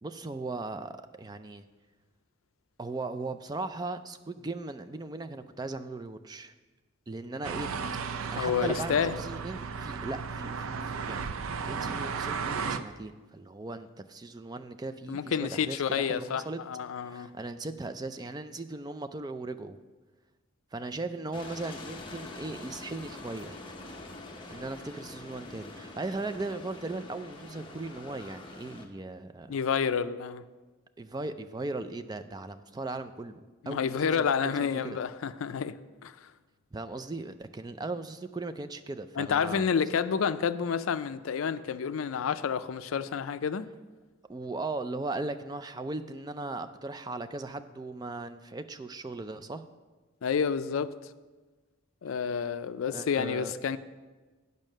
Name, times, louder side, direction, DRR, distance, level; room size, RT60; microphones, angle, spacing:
voice 1, 0.0-1.6 2.8-6.5 7.1-7.7 8.0-16.6 16.9-19.8 20.7-23.6 24.5-29.5 31.0-33.4 33.7-35.0 36.7-39.6 44.3-49.6 52.9-53.5, right 2 dB, 20° right, 0.3 m, -38 dB
sound 1, 7.4-12.8, right 5 dB, 90° right, 0.5 m, -34 dB
voice 2, 8.3-9.2 15.1-17.3 29.5-30.4 33.6-36.1 39.2-43.7 50.2-50.9 52.0-53.8, left 6 dB, 80° left, 0.4 m, -29 dB
sound 2, 21.3-28.8, left 2 dB, 25° left, 0.7 m, -45 dB
9.1 x 5.4 x 6.5 m
head